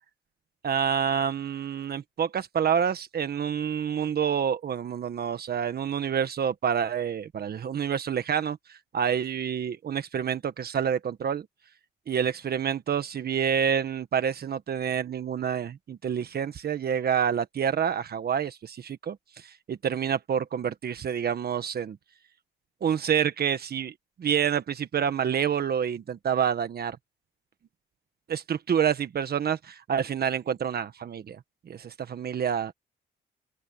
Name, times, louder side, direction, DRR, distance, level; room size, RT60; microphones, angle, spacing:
voice 1, 0.6-11.5 12.1-22.0 22.8-23.9 24.2-27.0 28.3-31.4 31.7-32.7, right 8 dB, 50° right, 1.4 m, -28 dB
open air
cardioid pair, 90°, 20 cm